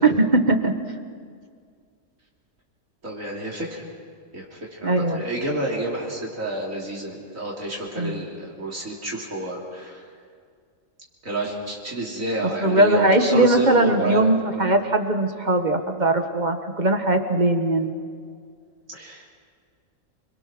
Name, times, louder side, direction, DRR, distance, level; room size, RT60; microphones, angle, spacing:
voice 1, 0.0-0.8 4.8-5.2 8.0-8.2 12.6-17.9, right 2 dB, 35° right, 6 dB, 1.5 m, -20 dB
voice 2, 3.0-3.8 4.3-10.0 11.2-14.3 14.5-14.7 18.9-19.3, right 1 dB, 75° right, -3 dB, 3.4 m, -29 dB
28.5 x 22.5 x 6.1 m, 2.1 s
omnidirectional pair, 1.4 m